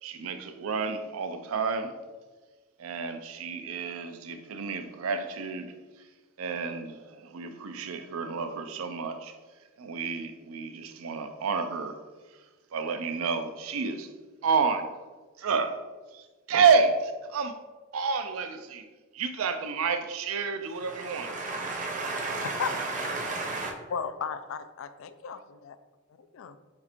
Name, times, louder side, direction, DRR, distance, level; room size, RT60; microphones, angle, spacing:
voice 1, 0.0-1.9 2.8-5.7 6.4-9.3 9.8-12.0 12.7-14.1 14.4-14.9 15.4-15.8 16.1-17.6 17.9-18.9 19.1-21.3, right 5 dB, 85° right, 0.4 m, -29 dB
voice 2, 20.7-23.7, right 3 dB, 35° right, 0.7 m, -33 dB
voice 3, 23.9-25.4 25.7-25.8 26.2-26.6, left 6 dB, 70° left, 0.3 m, -34 dB
7.3 x 2.5 x 2.9 m
head